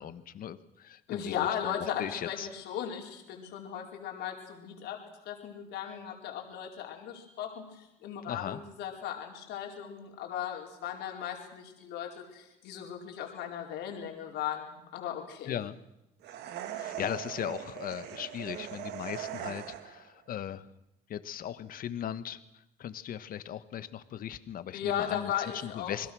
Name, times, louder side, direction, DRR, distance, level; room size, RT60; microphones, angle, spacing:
voice 1, 0.0-2.5 8.2-8.6 15.5-15.8 16.6-20.7 21.1-26.1, left 10 dB, 55° left, 13 dB, 1.4 m, -38 dB
voice 2, 1.1-5.0 5.2-15.6 24.7-25.9, left 9 dB, 85° left, 1 dB, 4.7 m, -37 dB
sound 1, 16.2-20.1, right 11 dB, 80° right, 2.1 m, -40 dB
28.5 x 21.5 x 6.4 m, 0.89 s
cardioid pair, 110°, 17 cm